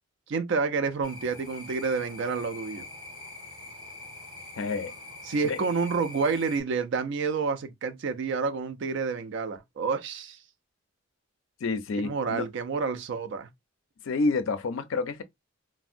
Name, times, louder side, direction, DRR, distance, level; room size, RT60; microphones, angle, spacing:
voice 1, 0.3-2.8 5.3-10.4 12.0-13.5, right 4 dB, 55° right, 0.3 m, -29 dB
sound 1, 1.0-6.6, left 2 dB, 20° right, 1.5 m, -44 dB
voice 2, 4.6-4.9 5.4-5.6 11.6-12.5 14.0-15.2, left 3 dB, 65° left, 0.4 m, -29 dB
3.4 x 2.0 x 2.4 m
head